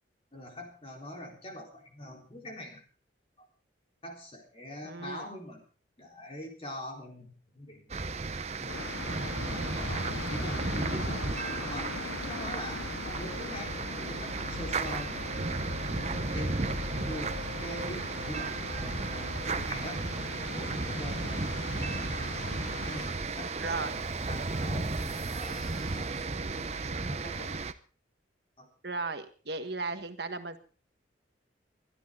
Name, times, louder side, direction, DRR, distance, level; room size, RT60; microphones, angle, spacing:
voice 1, 0.3-2.8 3.4-3.5 4.0-5.6 6.0-8.0 8.6-9.0 9.7-11.3 11.7-11.9 12.3-15.5 16.0-20.0 20.5-22.1 22.8-26.1 26.9-27.5 28.6-28.7, left 1 dB, 30° left, 1 dB, 4.0 m, -44 dB
voice 2, 4.8-5.3 23.6-24.0 28.8-30.6, right 3 dB, 60° right, 8 dB, 1.5 m, -36 dB
sound 1, 7.9-27.7, right 3 dB, 35° right, 0.8 m, -34 dB
sound 2, 8.7-23.1, left 4 dB, 80° left, 0.8 m, -40 dB
sound 3, 22.9-27.2, right 1 dB, ahead, 3.9 m, -49 dB
23.0 x 12.0 x 3.8 m, 0.38 s
head